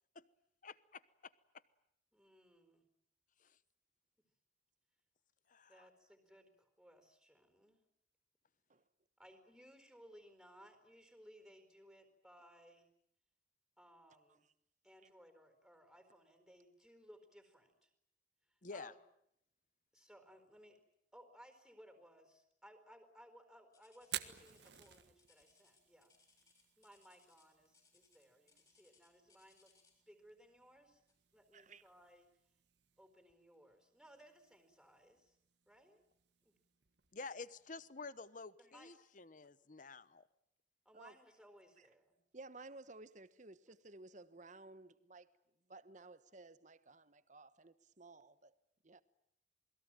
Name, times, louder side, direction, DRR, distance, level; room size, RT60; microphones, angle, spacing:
voice 1, 0.6-1.3 3.4-3.6 5.5-5.9 18.6-18.9 37.1-40.3, left 4 dB, 45° left, 1.0 m, -50 dB
voice 2, 2.1-2.9 5.7-7.8 9.2-12.9 13.8-14.4 14.8-17.9 18.5-19.0 19.9-20.8 21.1-26.1 26.8-29.7 30.1-31.0 31.3-32.3 33.0-35.4 35.7-36.0 36.4-36.6 38.6-38.9 40.8-42.2, equal, ahead, 4.4 m, -62 dB
sound 1, 23.7-30.1 31.1-31.3 31.9-32.0 32.7-32.8, left 5 dB, 20° left, 7.6 m, -72 dB
Fire, 24.0-37.9, right 11 dB, 65° right, 1.5 m, -55 dB
voice 3, 31.5-31.8 40.9-41.1 42.3-45.3 45.7-48.5 48.8-49.0, right 2 dB, 40° right, 1.2 m, -56 dB
28.0 x 21.5 x 9.0 m
head